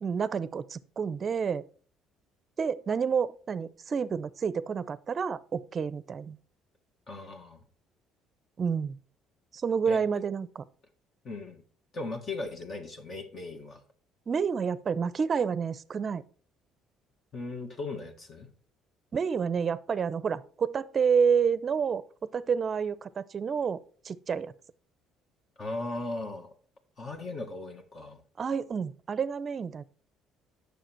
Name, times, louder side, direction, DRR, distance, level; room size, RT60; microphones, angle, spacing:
voice 1, 0.0-1.6 2.6-6.4 8.6-9.0 9.5-10.6 14.3-16.2 19.1-22.0 22.3-23.8 24.0-24.5 28.4-29.8, right 6 dB, 35° right, 0.6 m, -29 dB
voice 2, 7.1-7.6 9.9-10.0 11.2-11.6 11.9-13.8 17.3-18.5 25.6-26.5 27.0-28.2, left 2 dB, 40° left, 1.7 m, -37 dB
9.2 x 6.7 x 4.5 m
cardioid pair, 115°, 0 cm